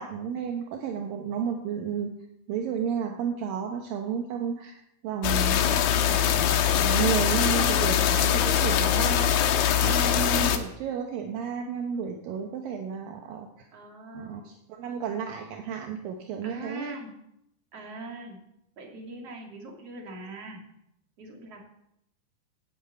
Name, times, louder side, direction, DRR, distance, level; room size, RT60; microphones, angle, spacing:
voice 1, 0.0-2.1 2.5-9.5 9.8-13.7 14.1-17.0, right 7 dB, 75° right, 3 dB, 2.7 m, -32 dB
sound 1, 5.2-10.6, left 9 dB, 80° left, 2.8 m, -23 dB
voice 2, 13.7-14.5 16.4-17.1 17.7-18.4 18.8-20.6 21.2-21.6, right 2 dB, 45° right, 0 dB, 3.7 m, -41 dB
13.0 x 8.0 x 8.7 m, 0.79 s
omnidirectional pair, 4.2 m